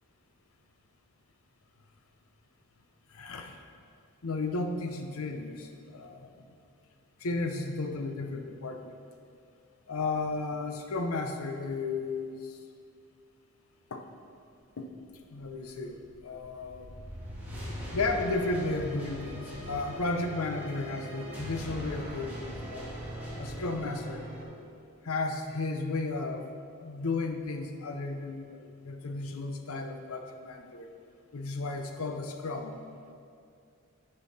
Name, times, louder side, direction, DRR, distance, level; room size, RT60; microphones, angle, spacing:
voice 1, 3.1-3.6 4.2-6.4 7.2-9.0 9.9-12.6 13.9-14.0 14.8-14.9 15.3-17.0 17.9-22.9 23.4-24.2 25.0-26.5 26.8-30.9 31.3-32.8, left 3 dB, 70° left, 5 dB, 0.7 m, -34 dB
sound 1, 15.4-24.4, equal, 10° right, 1.9 m, -41 dB
9.9 x 5.6 x 4.1 m, 2.4 s
head